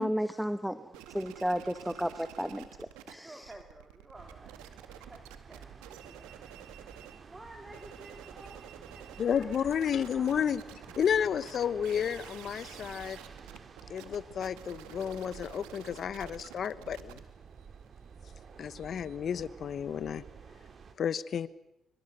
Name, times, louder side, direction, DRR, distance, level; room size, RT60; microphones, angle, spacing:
voice 1, 0.0-3.5, equal, 5° right, 11 dB, 1.2 m, -33 dB
sound 1, 0.9-3.1 3.4-7.2 7.6-19.2, right 12 dB, 85° right, 2.0 m, -51 dB
voice 2, 3.2-6.5 7.2-9.7 10.1-10.3 11.5-11.6, right 1 dB, 25° right, 3 dB, 3.7 m, -52 dB
sound 2, 4.1-20.9, right 6 dB, 50° right, 3.2 m, -51 dB
voice 3, 9.2-10.6 11.0-13.2 13.9-17.2 18.6-20.2 21.0-21.5, left 8 dB, 60° left, 17 dB, 1.1 m, -31 dB
26.0 x 25.5 x 6.8 m, 0.85 s
supercardioid pair, 55°, 0 cm